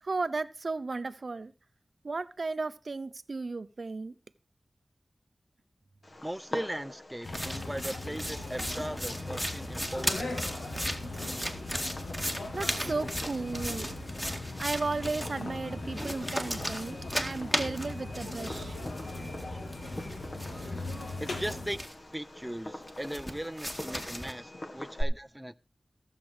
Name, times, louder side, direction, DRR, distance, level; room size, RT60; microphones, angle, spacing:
voice 1, 0.0-1.5 2.0-4.1 10.7-11.7 12.5-13.9 14.6-18.8, right 3 dB, 60° right, 0.6 m, -35 dB
Fireworks, 6.0-25.0, left 1 dB, 50° left, 1.8 m, -44 dB
voice 2, 6.2-10.3 16.5-16.6 17.2-17.4 18.7-20.0 21.2-21.8 22.1-25.5, right 1 dB, 10° right, 0.6 m, -39 dB
sound 1, 7.2-21.8, left 2 dB, 85° left, 2.8 m, -39 dB
sound 2, 7.3-15.3 15.9-19.4 19.7-22.1 22.9-24.3, equal, 10° left, 2.1 m, -36 dB
15.5 x 7.4 x 4.8 m
wide cardioid pair, 70°, 0 cm